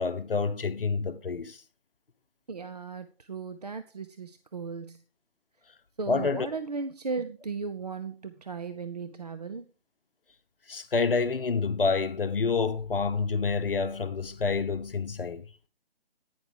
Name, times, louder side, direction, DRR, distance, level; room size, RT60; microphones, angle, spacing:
voice 1, 0.0-1.6 6.1-6.5 10.7-15.4, left 4 dB, 60° left, 1.0 m, -28 dB
voice 2, 2.5-5.0 6.0-9.6, right 4 dB, 40° right, 0.5 m, -36 dB
10.5 x 9.6 x 3.4 m
figure-of-eight pair, 150°, 32 cm